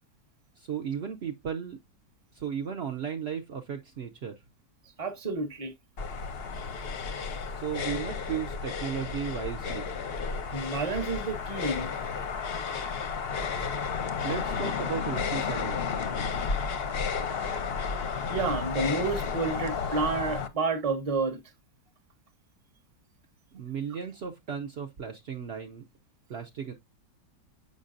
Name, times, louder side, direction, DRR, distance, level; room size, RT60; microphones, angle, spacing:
voice 1, 0.6-1.8 2.3-4.4 7.5-9.9 14.2-15.9 23.5-25.8 26.3-26.7, right 7 dB, 70° right, 0.6 m, -35 dB
voice 2, 5.0-5.7 10.5-11.9 18.3-21.4, right 4 dB, 30° right, 0.8 m, -30 dB
sound 1, 6.0-20.5, left 5 dB, 55° left, 0.7 m, -32 dB
7.2 x 5.3 x 2.5 m
omnidirectional pair, 1.8 m